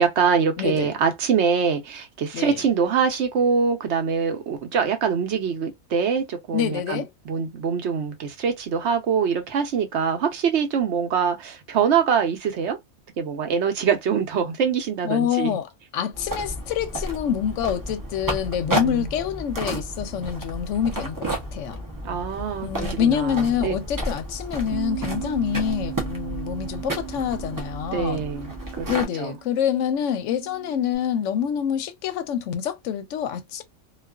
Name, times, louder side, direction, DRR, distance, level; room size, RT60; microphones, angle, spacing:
voice 1, 0.0-12.8 13.2-15.6 18.8-19.1 22.0-23.7 27.9-28.5 28.8-28.9 29.2-29.3, right 6 dB, 60° right, 0.9 m, -24 dB
voice 2, 0.6-0.9 2.3-2.6 6.5-7.1 15.0-21.3 21.5-21.8 22.6-28.3 28.9-33.6, left 9 dB, 70° left, 0.9 m, -26 dB
sound 1, 16.1-29.0, right 1 dB, 25° right, 0.4 m, -32 dB
Bass guitar, 24.7-31.0, right 18 dB, 80° right, 1.1 m, -37 dB
2.4 x 2.3 x 2.2 m
omnidirectional pair, 1.4 m